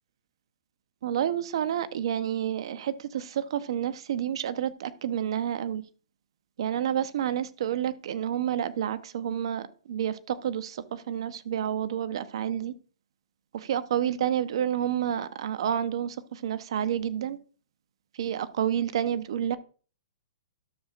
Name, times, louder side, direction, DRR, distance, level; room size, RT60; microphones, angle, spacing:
voice 1, 1.0-5.8 6.6-12.7 13.7-17.4 18.2-19.6, right 9 dB, 60° right, 0.9 m, -29 dB
12.5 x 7.2 x 2.5 m
hypercardioid pair, 140°, 3 cm